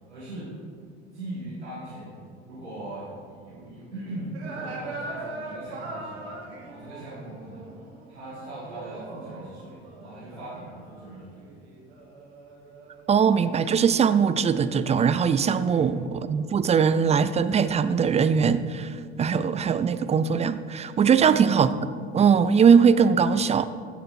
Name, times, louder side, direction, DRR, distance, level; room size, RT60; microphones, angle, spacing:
voice 1, 0.1-0.5 1.1-2.2 2.5-6.3 6.6-7.7 8.1-11.5 15.6-15.9 21.1-21.5, right 1 dB, 90° right, -11 dB, 2.6 m, -40 dB
sound 1, 4.3-13.2 13.9-15.4 15.9-18.8, right 2 dB, 75° right, 1.8 m, -42 dB
voice 2, 13.1-23.7, right 6 dB, 20° right, 13 dB, 0.5 m, -21 dB
15.0 x 6.7 x 4.4 m, 2.2 s
figure-of-eight pair, 65°, 33 cm